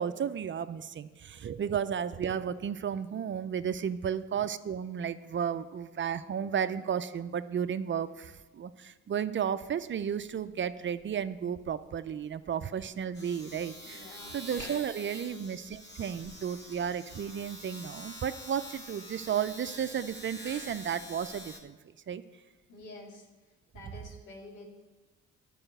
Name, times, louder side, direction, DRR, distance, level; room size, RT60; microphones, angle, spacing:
voice 1, 0.0-21.8 22.1-22.2, right 8 dB, 40° right, 13 dB, 0.5 m, -33 dB
Domestic sounds home sounds, 9.8-10.0 10.3-21.6, left 1 dB, 35° left, 2.2 m, -46 dB
voice 2, 13.8-14.5 15.2-15.5 22.7-23.3 23.7-24.7, left 2 dB, 85° left, 1 dB, 2.2 m, -49 dB
11.0 x 4.9 x 7.9 m, 1.2 s
cardioid pair, 90°, 30 cm